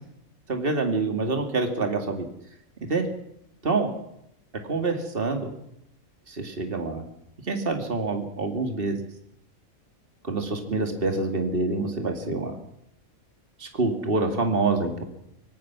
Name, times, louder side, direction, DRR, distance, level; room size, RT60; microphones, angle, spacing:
voice 1, 0.5-2.3 2.9-3.1 3.6-3.9 4.6-5.5 6.3-7.1 7.5-9.0 10.2-12.6 13.6-15.0, right 3 dB, 40° right, 5 dB, 2.7 m, -26 dB
25.5 x 18.5 x 6.1 m, 0.80 s
omnidirectional pair, 1.4 m